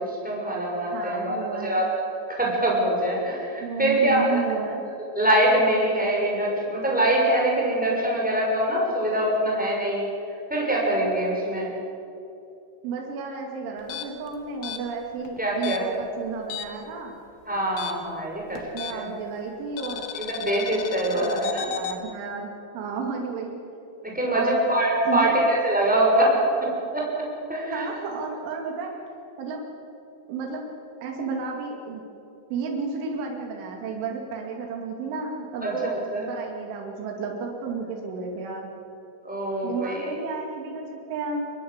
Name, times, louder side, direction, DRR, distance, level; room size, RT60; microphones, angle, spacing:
voice 1, 0.1-1.9 2.4-4.4 5.2-10.1 10.5-11.7 15.4-15.8 17.5-18.6 18.9-19.1 20.1-21.7 24.1-26.4 26.9-27.9 35.6-35.7 36.1-36.2 39.2-40.2, right 1 dB, ahead, -3 dB, 6.1 m, -24 dB
voice 2, 0.9-1.8 3.6-4.9 12.8-17.2 18.5-20.1 21.1-21.3 21.7-23.6 24.3-24.6 25.0-25.4 27.7-28.9 29.4-29.6 30.3-30.7 31.0-32.0 32.5-36.0 36.3-38.7 39.6-41.5, right 4 dB, 70° right, 0 dB, 4.8 m, -32 dB
sound 1, 13.8-16.9 17.2-19.2 19.8-22.0, left 9 dB, 75° left, 3.7 m, -35 dB
24.0 x 21.5 x 8.1 m, 2.7 s
omnidirectional pair, 5.9 m